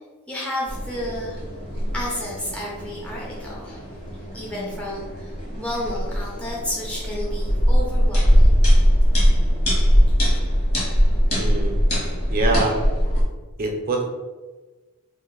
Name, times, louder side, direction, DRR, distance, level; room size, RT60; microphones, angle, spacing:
voice 1, 0.3-1.4 1.9-3.9 4.3-8.5, left 1 dB, 5° left, -6 dB, 0.5 m, -31 dB
sound 1, 0.7-13.2, equal, 50° left, 1.3 m, -21 dB
voice 2, 11.3-11.8 12.3-12.8 13.6-14.0, right 2 dB, 40° right, 1 dB, 0.5 m, -23 dB
2.6 x 2.5 x 3.8 m, 1.3 s
head